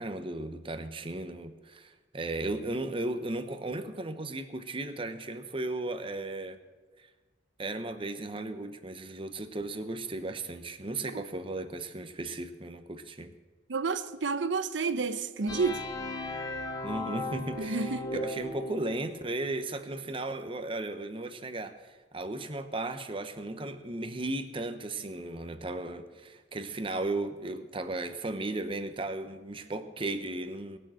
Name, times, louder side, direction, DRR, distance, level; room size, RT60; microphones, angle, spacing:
voice 1, 0.0-6.6 7.0-7.1 7.6-13.3 16.8-30.8, right 2 dB, 30° right, 0.9 m, -35 dB
voice 2, 13.7-15.8 17.5-18.2, right 4 dB, 75° right, 0.7 m, -30 dB
sound 1, 15.5-19.2, left 2 dB, 20° left, 1.0 m, -37 dB
19.0 x 6.4 x 7.7 m
head